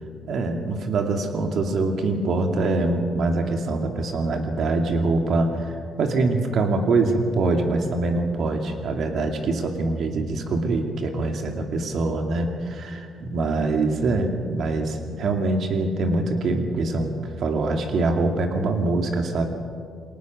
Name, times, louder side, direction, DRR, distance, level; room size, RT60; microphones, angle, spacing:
voice 1, 0.3-5.7 6.0-19.5, right 3 dB, 65° right, 4 dB, 2.5 m, -24 dB
22.5 x 18.5 x 6.3 m, 2.2 s
cardioid pair, 90°, 0 cm